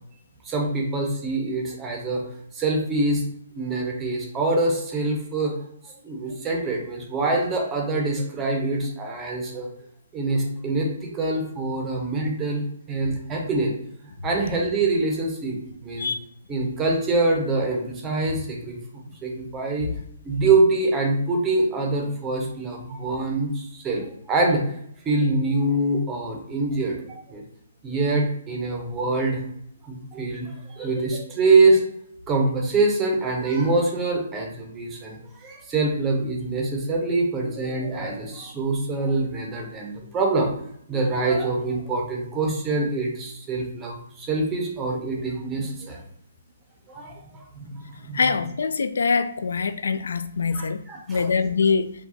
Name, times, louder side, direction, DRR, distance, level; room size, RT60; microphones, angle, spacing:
voice 1, 0.5-2.2 2.5-3.2 3.6-5.6 6.0-9.7 10.1-12.6 12.9-13.7 14.2-16.1 16.5-18.8 19.2-19.9 20.2-24.8 25.1-27.0 27.3-27.4 27.8-29.4 29.8-31.8 32.3-40.5 40.9-46.0 46.9-48.2 50.5-51.3, right 2 dB, 10° right, 1 dB, 0.6 m, -24 dB
voice 2, 48.1-50.8 51.1-51.9, left 5 dB, 85° left, 11 dB, 0.4 m, -23 dB
4.7 x 2.2 x 4.0 m, 0.68 s
hypercardioid pair, 180°, 0 cm